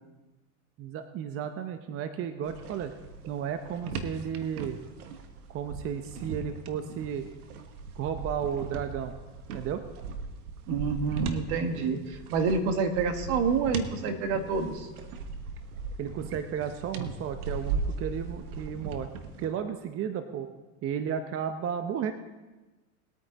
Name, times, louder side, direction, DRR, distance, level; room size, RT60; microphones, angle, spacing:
voice 1, 0.8-2.9 3.3-4.8 5.5-7.3 7.9-9.1 9.5-9.8 16.0-19.1 19.4-20.5 20.8-22.1, right 8 dB, 30° right, 8 dB, 0.7 m, -33 dB
sound 1, 2.4-19.5, right 4 dB, 80° right, 1.4 m, -38 dB
voice 2, 10.7-14.9, right 5 dB, 60° right, 7 dB, 1.7 m, -28 dB
20.0 x 9.2 x 4.0 m, 1.2 s
supercardioid pair, 120°, 44 cm